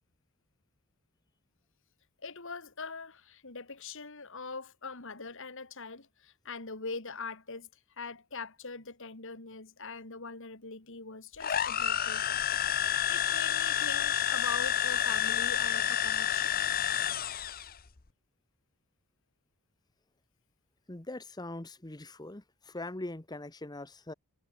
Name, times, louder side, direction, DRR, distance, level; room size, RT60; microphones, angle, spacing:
voice 1, 2.2-7.7 8.0-12.5 12.7-16.5, left 4 dB, 60° left, 2.5 m, -42 dB
sound 1, 11.4-17.7, left 9 dB, 40° left, 0.9 m, -29 dB
voice 2, 20.9-24.1, left 2 dB, 20° left, 1.1 m, -42 dB
head